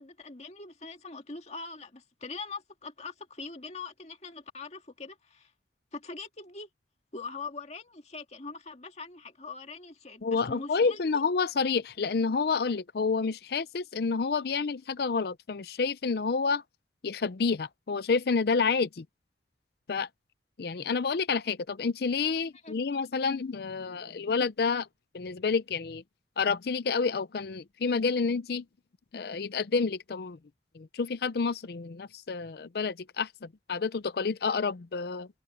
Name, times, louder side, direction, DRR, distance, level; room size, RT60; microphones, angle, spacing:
voice 1, 0.0-5.5 5.9-6.7 7.1-11.2 22.6-22.7, left 4 dB, 40° left, 2.1 m, -42 dB
voice 2, 10.2-16.6 17.0-19.0 19.9-20.1 20.6-24.9 25.1-26.0 26.4-28.6 29.1-30.4 30.8-35.3, left 4 dB, 60° left, 0.5 m, -29 dB
head